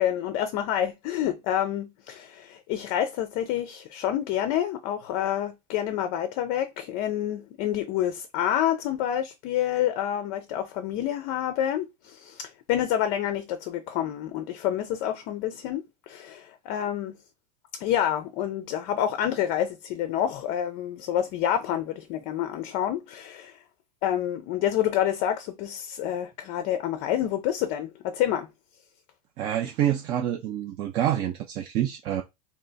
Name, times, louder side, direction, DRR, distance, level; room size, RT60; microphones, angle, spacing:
voice 1, 0.0-17.2 17.8-23.6 24.0-28.5, left 11 dB, 35° left, 0.5 m, -28 dB
voice 2, 29.4-32.2, right 11 dB, 25° right, 0.3 m, -27 dB
3.3 x 2.8 x 3.9 m
supercardioid pair, 165°, 21 cm